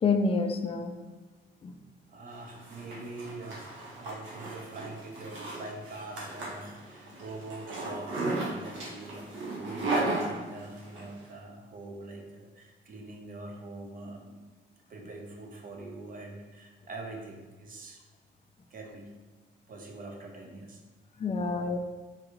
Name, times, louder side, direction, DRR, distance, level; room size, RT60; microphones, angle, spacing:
voice 1, 0.0-0.9 1.6-1.7 21.2-21.8, left 4 dB, 30° left, 6 dB, 0.4 m, -27 dB
voice 2, 2.1-14.4 14.9-18.0 18.7-19.1 19.7-20.8, right 2 dB, 45° right, 1 dB, 0.7 m, -44 dB
Zipper (clothing), 2.3-11.0, right 2 dB, 75° right, 0.9 m, -35 dB
3.8 x 2.4 x 3.0 m, 1.3 s
cardioid pair, 90°, 20 cm